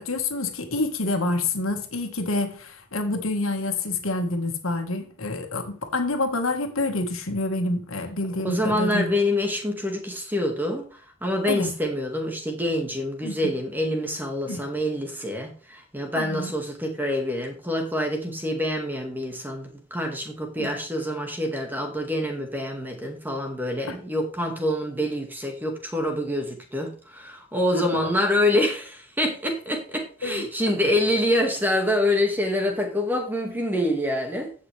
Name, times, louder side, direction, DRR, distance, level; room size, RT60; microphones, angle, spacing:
voice 1, 0.0-9.1 11.5-11.8 13.2-13.5 14.5-14.6 16.1-16.5 20.6-20.7 23.9-24.0 27.7-28.1 30.2-30.5, left 2 dB, 85° left, 1.7 m, -27 dB
voice 2, 8.4-10.9 11.2-34.5, left 1 dB, 10° right, 2.0 m, -26 dB
15.5 x 6.1 x 3.4 m
head